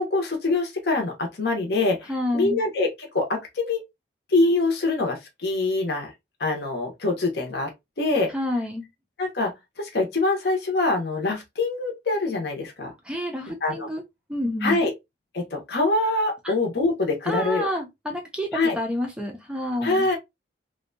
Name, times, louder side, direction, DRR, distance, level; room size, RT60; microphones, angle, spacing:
voice 1, 0.0-3.8 4.3-6.1 6.4-7.7 8.0-8.3 9.2-12.9 13.6-13.9 14.6-14.9 15.3-17.7 18.5-18.8 19.8-20.2, left 2 dB, 65° left, 0.7 m, -24 dB
voice 2, 2.1-2.6 8.3-8.9 13.0-14.0 14.3-14.8 16.4-16.5 17.2-18.5 18.7-20.1, left 1 dB, 5° right, 0.4 m, -28 dB
2.6 x 2.1 x 2.5 m
head